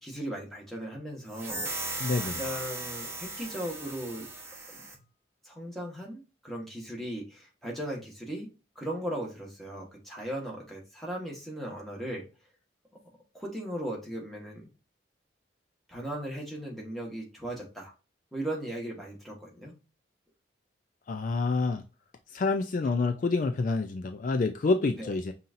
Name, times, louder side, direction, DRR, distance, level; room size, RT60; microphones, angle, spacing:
voice 1, 0.0-1.9 2.2-4.3 4.7-4.8 5.4-8.5 8.7-12.3 13.3-14.7 15.9-17.9 18.3-19.7 25.0-25.2, right 1 dB, ahead, 1.3 m, -37 dB
sound 1, 1.3-5.0, right 2 dB, 15° right, 0.9 m, -37 dB
voice 2, 2.0-2.4 21.1-21.8 22.3-25.3, left 3 dB, 45° left, 0.3 m, -28 dB
5.5 x 2.8 x 2.5 m
head